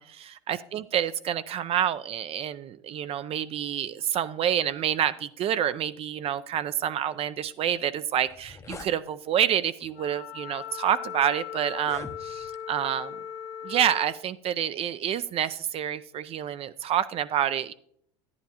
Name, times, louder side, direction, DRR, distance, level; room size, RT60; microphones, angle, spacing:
voice 1, 0.0-13.1 13.6-17.7, right 10 dB, 40° right, 14 dB, 0.4 m, -28 dB
sound 1, 7.8-7.9 8.2-8.9 9.8-10.0 10.7-10.8 11.7-12.6, left 4 dB, 20° left, 0.6 m, -44 dB
Wind instrument woodwind instrument, 9.9-14.2, left 9 dB, 60° left, 0.8 m, -38 dB
10.5 x 9.5 x 2.8 m, 0.67 s
hypercardioid pair, 85°, 16 cm